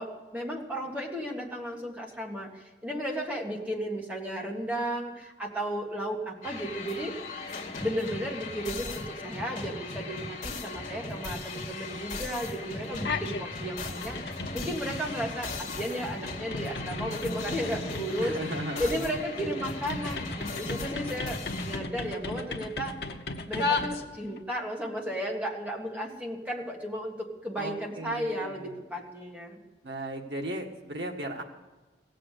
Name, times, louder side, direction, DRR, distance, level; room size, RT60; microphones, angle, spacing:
voice 1, 0.0-7.2 7.8-14.2 14.5-18.4 18.8-23.0 23.5-29.6, equal, 10° right, 0 dB, 1.7 m, -34 dB
sound 1, 6.4-21.8, left 3 dB, 45° left, 1.9 m, -38 dB
sound 2, 12.9-13.4 13.8-24.4, left 3 dB, 70° left, 1.0 m, -36 dB
voice 2, 18.2-19.0 27.6-28.6 29.8-31.4, right 1 dB, 80° right, 2 dB, 1.8 m, -36 dB
17.0 x 7.6 x 8.2 m, 1.2 s
head